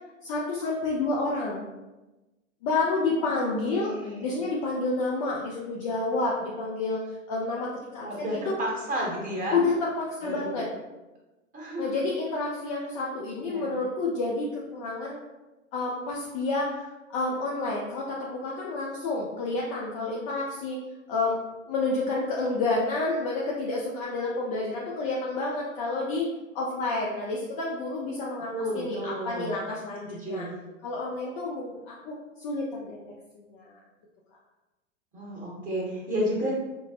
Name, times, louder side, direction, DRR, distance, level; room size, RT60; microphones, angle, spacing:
voice 1, 0.2-1.6 2.6-4.0 4.2-8.5 9.5-10.7 11.8-15.2 15.7-16.8 17.1-20.8 21.1-21.4 21.7-26.3 26.5-30.5 30.8-33.0 33.3-33.8, left 3 dB, 30° left, -4 dB, 0.4 m, -29 dB
voice 2, 3.1-4.3 8.0-9.6 10.2-10.6 11.5-11.9 13.4-13.8 28.5-29.5 30.1-30.5 35.1-36.5, equal, 20° right, -3 dB, 1.0 m, -32 dB
5.2 x 2.0 x 2.4 m, 1.1 s
figure-of-eight pair, 90°, 40 cm